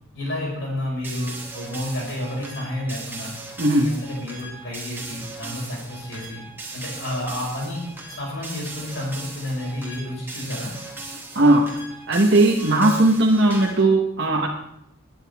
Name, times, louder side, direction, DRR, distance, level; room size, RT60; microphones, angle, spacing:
voice 1, 0.1-3.3 3.7-6.4 6.7-7.8 8.1-10.7, left 1 dB, 55° left, -2 dB, 5.5 m, -30 dB
sound 1, 1.0-13.9, right 3 dB, 10° right, 2.0 m, -38 dB
voice 2, 3.6-3.9 11.3-11.8 12.1-14.5, right 2 dB, 55° right, -2 dB, 1.1 m, -18 dB
21.5 x 9.2 x 3.5 m, 0.77 s
head